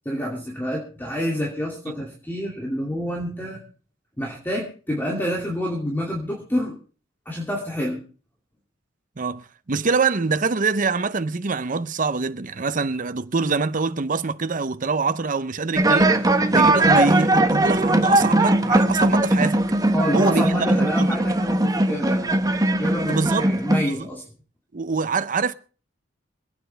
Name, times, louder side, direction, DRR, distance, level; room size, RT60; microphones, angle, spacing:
voice 1, 0.0-3.6 4.2-6.7 7.3-8.0 19.9-22.3 22.8-24.2, equal, 10° left, 2.6 m, -28 dB
voice 2, 9.2-16.2 16.5-19.6 20.1-21.1 23.1-24.1 24.7-25.5, right 4 dB, 45° right, 0.7 m, -24 dB
sound 1, 15.8-23.8, right 1 dB, 20° right, 1.2 m, -19 dB
26.0 x 9.2 x 3.4 m
head